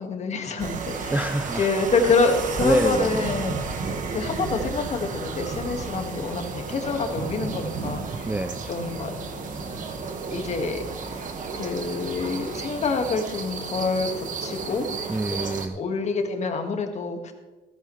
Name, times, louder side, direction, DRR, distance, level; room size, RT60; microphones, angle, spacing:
voice 1, 0.0-8.3 8.7-9.2 10.3-11.2 11.5-14.9 15.7-17.3, left 4 dB, 40° left, 5 dB, 1.8 m, -27 dB
sound 1, 0.6-15.7, right 4 dB, 50° right, 1.6 m, -33 dB
voice 2, 1.1-1.7 2.6-3.3 8.2-8.7 15.1-15.8, right 2 dB, 10° right, 11 dB, 0.4 m, -26 dB
sound 2, 2.5-12.3, right 1 dB, 30° right, 2.4 m, -44 dB
14.5 x 14.0 x 3.2 m, 1.2 s
cardioid pair, 110°, 17 cm